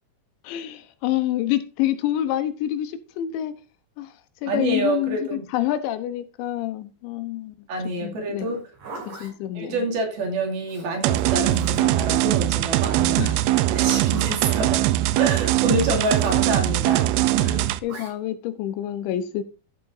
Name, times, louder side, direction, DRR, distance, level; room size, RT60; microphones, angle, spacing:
voice 1, 0.4-3.5 4.0-4.1 4.4-7.5 8.0-8.5 9.1-9.7 13.2-13.4 17.4-19.4, left 12 dB, 80° left, 3.3 m, -27 dB
voice 2, 4.5-5.4 7.7-8.6 9.5-13.3 13.7-14.8 15.2-17.5, right 2 dB, 60° right, 4.1 m, -27 dB
Zipper (clothing), 8.5-9.3 10.6-12.0 13.4-14.5 16.0-16.4 17.9-18.1, right 2 dB, 45° right, 7.5 m, -40 dB
sound 1, 11.0-17.8, right 15 dB, 90° right, 2.2 m, -21 dB
14.5 x 7.7 x 2.6 m
omnidirectional pair, 5.3 m